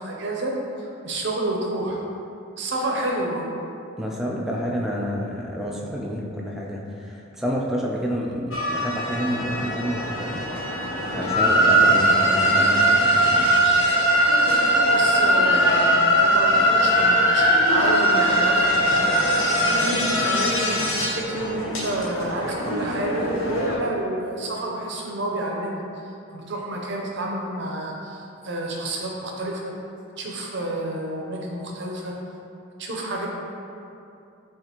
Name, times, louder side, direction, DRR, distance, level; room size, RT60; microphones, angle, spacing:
voice 1, 0.0-2.0 2.6-3.5 14.9-19.0 19.6-25.8 26.3-29.7 30.2-32.1 32.8-33.3, right 1 dB, 55° right, -1 dB, 0.6 m, -29 dB
voice 2, 4.0-13.5, equal, ahead, -3 dB, 0.3 m, -29 dB
sound 1, 8.5-23.8, right 1 dB, 65° left, 0.8 m, -20 dB
6.6 x 2.5 x 2.9 m, 2.7 s
head